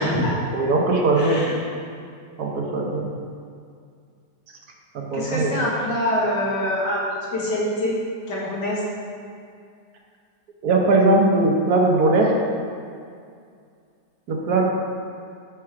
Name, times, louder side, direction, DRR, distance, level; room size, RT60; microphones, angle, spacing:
voice 1, 0.0-0.4 1.2-1.5 5.1-7.0 7.3-8.0 8.3-8.8, left 1 dB, 90° left, -5 dB, 2.2 m, -24 dB
voice 2, 0.5-1.5 2.4-3.1 4.9-5.6 10.6-12.4 14.3-14.7, right 2 dB, 65° right, -1 dB, 1.4 m, -19 dB
8.3 x 4.7 x 4.8 m, 2.3 s
omnidirectional pair, 1.8 m